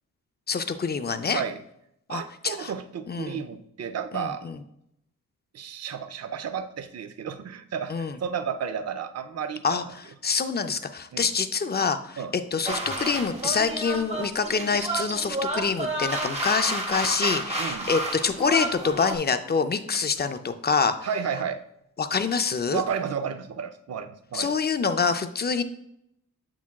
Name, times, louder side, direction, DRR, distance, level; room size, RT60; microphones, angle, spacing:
voice 1, 0.5-1.4 2.1-2.7 3.1-3.4 4.1-4.6 7.9-8.2 9.6-21.0 22.0-22.8 24.3-25.6, left 5 dB, 30° left, 9 dB, 0.4 m, -26 dB
voice 2, 2.1-4.5 5.5-9.8 11.1-11.3 12.2-12.3 17.6-17.9 21.0-21.6 22.7-24.5, right 7 dB, 50° right, 9 dB, 0.5 m, -32 dB
sound 1, 12.7-19.2, right 2 dB, 20° right, 0.9 m, -30 dB
7.2 x 5.9 x 2.3 m, 0.77 s
wide cardioid pair, 135°, 34 cm